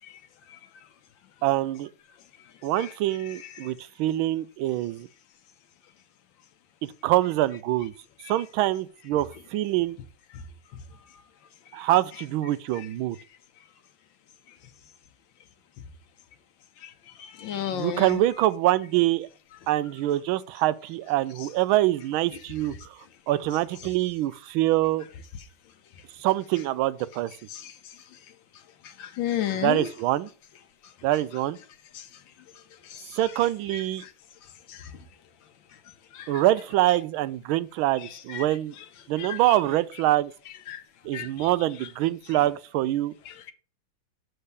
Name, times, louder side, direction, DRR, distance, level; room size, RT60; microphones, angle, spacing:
voice 1, 1.4-1.9 2.6-5.1 6.8-7.9 8.3-10.0 11.7-13.2 17.7-19.3 19.7-23.0 23.3-25.0 26.2-27.3 29.6-30.3 31.0-31.6 33.1-34.0 36.3-38.7 39.1-40.3 41.0-43.1, right 15 dB, 90° right, 1.4 m, -25 dB
voice 2, 17.4-18.2 27.5-27.7 29.0-29.9 31.9-32.0 32.9-33.2 34.7-34.9 36.1-36.4 38.3-38.4 39.2-39.4 40.7-40.8 41.1-41.5 43.3-43.5, left 11 dB, 75° left, 1.5 m, -32 dB
6.7 x 4.4 x 6.7 m
omnidirectional pair, 2.2 m